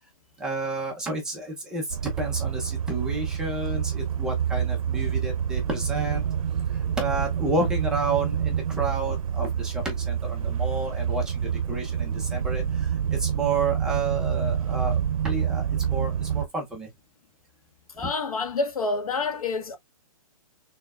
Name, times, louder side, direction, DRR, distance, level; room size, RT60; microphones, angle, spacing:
voice 1, 0.4-6.2 6.7-16.9 18.0-18.1, right 2 dB, 5° right, 0.7 m, -31 dB
sound 1, 1.9-16.5, right 8 dB, 70° right, 0.7 m, -27 dB
voice 2, 17.9-19.8, left 3 dB, 80° left, 1.9 m, -28 dB
6.3 x 3.4 x 2.4 m
hypercardioid pair, 175°, 18 cm